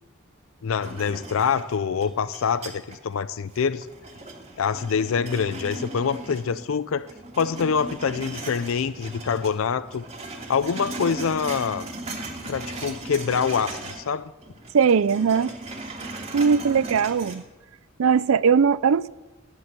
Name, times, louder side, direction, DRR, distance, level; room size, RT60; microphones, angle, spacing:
voice 1, 0.6-3.9 4.6-7.1 7.4-10.0 10.5-11.9 12.5-14.3, left 6 dB, 70° left, 0.5 m, -25 dB
sound 1, 0.8-3.1 3.5-6.7 7.0-9.5 9.8-14.1 14.4-17.3, right 2 dB, 30° right, 2.5 m, -37 dB
voice 2, 14.7-15.5 16.3-17.4 18.0-19.1, right 6 dB, 80° right, 0.4 m, -19 dB
17.0 x 10.5 x 7.4 m
head